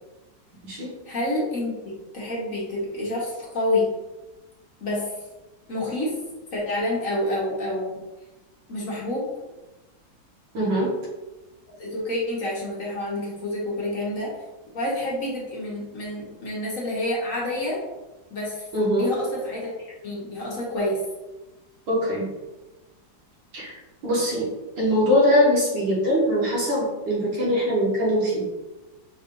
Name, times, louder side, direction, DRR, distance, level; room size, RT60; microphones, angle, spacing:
voice 1, 1.1-3.9 4.8-5.1 5.7-6.1 6.5-8.0 8.7-9.3 11.8-14.3 14.7-17.8 18.3-18.7 18.9-19.7 20.0-21.0 27.4-27.6, left 1 dB, 50° left, -5 dB, 1.3 m, -28 dB
voice 2, 10.5-10.9 18.7-19.1 21.9-22.3 23.5-23.7 24.0-24.5 24.8-28.5, equal, 80° right, -6 dB, 2.2 m, -22 dB
5.4 x 3.3 x 2.5 m, 1.1 s
omnidirectional pair, 2.0 m